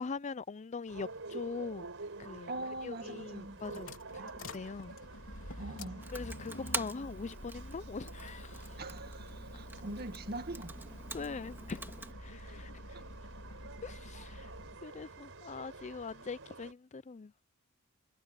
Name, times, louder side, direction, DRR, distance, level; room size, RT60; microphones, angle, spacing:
voice 1, 0.0-1.9 2.2-2.5 2.8-3.9 4.2-4.9 6.1-8.8 11.1-11.9 12.2-12.7 13.8-14.5 14.8-17.3, left 4 dB, 30° left, 0.5 m, -42 dB
sound 1, 0.9-16.7, right 3 dB, 60° right, 5.6 m, -50 dB
voice 2, 2.5-3.8 4.1-4.3 5.6-6.1 8.8-10.7, right 2 dB, 45° right, 2.0 m, -42 dB
sound 2, 3.3-14.8, left 1 dB, 65° left, 3.8 m, -48 dB
Computer keyboard, 6.0-12.1, right 2 dB, 10° right, 1.9 m, -45 dB
head